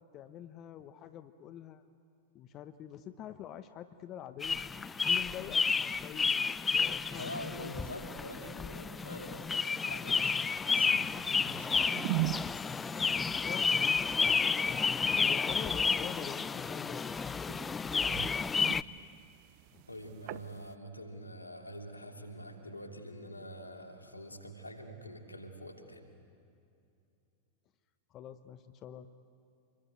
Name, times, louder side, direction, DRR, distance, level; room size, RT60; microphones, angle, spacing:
voice 1, 0.0-1.8 2.3-4.6 5.0-7.7 13.0-14.0 14.6-17.1 19.7-19.8 28.1-29.1, left 10 dB, 35° left, 11 dB, 1.0 m, -46 dB
sound 1, 4.4-18.8, left 5 dB, 15° left, 0.5 m, -31 dB
voice 2, 7.1-12.4 19.9-26.1, equal, 85° left, 3 dB, 3.0 m, -46 dB
sound 2, 10.6-20.7, right 18 dB, 45° right, 0.6 m, -42 dB
27.0 x 22.0 x 9.3 m, 2.6 s
figure-of-eight pair, 90°, 0 cm